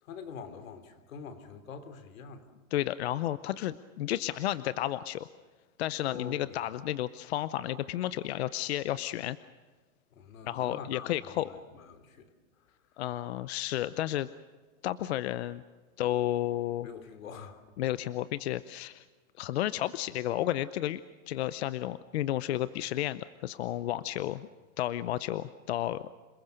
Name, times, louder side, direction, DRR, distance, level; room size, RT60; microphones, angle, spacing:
voice 1, 0.0-2.5 6.0-6.6 10.1-12.3 16.8-17.6, left 5 dB, 85° left, 9 dB, 3.4 m, -45 dB
voice 2, 2.7-5.3 5.8-9.4 10.4-11.5 13.0-14.3 14.8-15.6 16.0-16.9 17.8-19.0 19.4-21.0 21.3-24.5 24.8-26.1, left 13 dB, 55° left, 15 dB, 0.7 m, -32 dB
28.0 x 20.5 x 6.7 m, 1.3 s
supercardioid pair, 180°, 39 cm